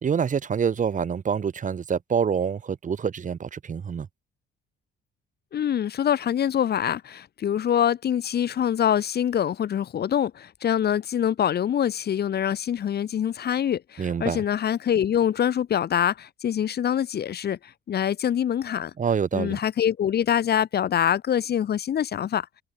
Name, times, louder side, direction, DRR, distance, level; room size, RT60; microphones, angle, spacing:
voice 1, 0.0-4.1 14.0-14.4 19.0-19.6, right 7 dB, 40° right, 1.1 m, -26 dB
voice 2, 5.5-18.9 19.3-22.5, left 9 dB, 55° left, 1.0 m, -25 dB
cardioid pair, 90°, 20 cm